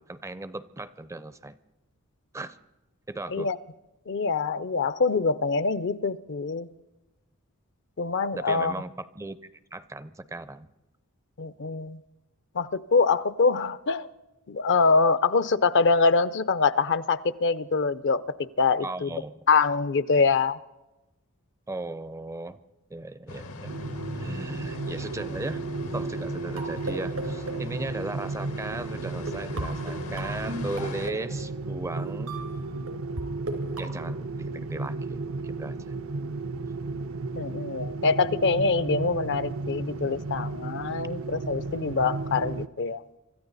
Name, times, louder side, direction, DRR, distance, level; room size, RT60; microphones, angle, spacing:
voice 1, 0.0-1.6 2.3-2.6 3.1-3.5 8.3-9.4 9.7-10.7 18.8-19.5 20.1-20.2 21.7-22.6 22.9-23.7 24.2-25.7 25.9-32.4 33.8-35.8, right 2 dB, 15° right, 15 dB, 0.5 m, -37 dB
voice 2, 4.1-6.7 8.0-8.7 11.4-12.0 12.5-14.1 14.5-18.2 18.6-19.1 19.5-20.6 37.4-43.0, left 4 dB, 55° left, 15 dB, 0.6 m, -24 dB
sound 1, 23.3-31.1, left 3 dB, 70° left, 0.9 m, -41 dB
sound 2, 23.7-42.7, right 3 dB, 65° right, 0.6 m, -34 dB
sound 3, 25.8-28.3 29.0-29.1 29.3-33.2 33.5-33.9, right 2 dB, 85° right, 3.6 m, -38 dB
25.5 x 13.5 x 4.0 m, 0.99 s
head